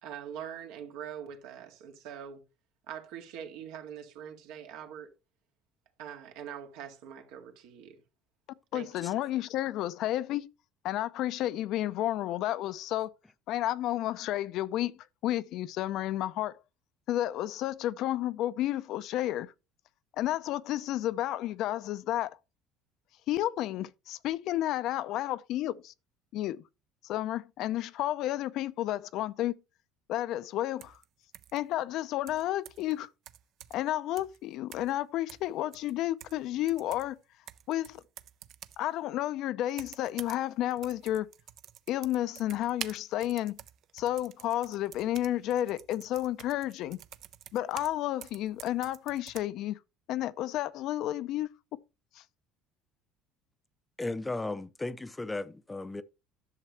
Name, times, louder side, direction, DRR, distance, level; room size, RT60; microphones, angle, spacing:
voice 1, 0.0-2.4 2.9-5.1 6.0-8.0 8.7-9.0, right 9 dB, 80° right, 2.0 m, -43 dB
voice 2, 8.7-10.5 10.8-13.1 13.5-16.5 17.1-19.5 20.2-22.4 23.3-25.9 26.3-26.6 27.0-29.5 30.1-31.0 31.5-33.1 33.7-37.2 37.7-38.0 38.8-41.3 41.9-43.5 43.9-47.0 47.5-49.8 50.1-51.5, left 13 dB, 60° left, 0.5 m, -31 dB
sound 1, 30.8-31.1 31.3-31.6 32.3-32.9 33.3-33.9 34.2-34.4 34.7-35.0 35.3-36.4 36.7-38.8 39.7-40.4 40.7-48.0 48.2-49.4, right 11 dB, 55° right, 0.6 m, -48 dB
voice 3, 54.0-56.0, left 2 dB, 10° left, 0.5 m, -35 dB
11.0 x 6.6 x 3.0 m
cardioid pair, 120°, 0 cm